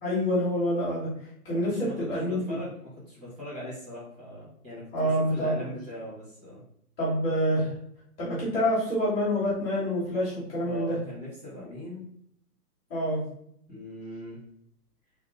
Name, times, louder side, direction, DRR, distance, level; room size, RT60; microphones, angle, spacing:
voice 1, 0.0-1.1 1.4-2.6 4.9-5.5 7.0-7.7 8.2-10.9 12.9-13.2, equal, 5° left, -24 dB, 0.5 m, -27 dB
voice 2, 1.4-6.6 10.6-12.1 13.7-14.4, left 1 dB, 15° right, -9 dB, 1.6 m, -40 dB
3.5 x 2.8 x 3.7 m, 0.70 s
hypercardioid pair, 165°, 46 cm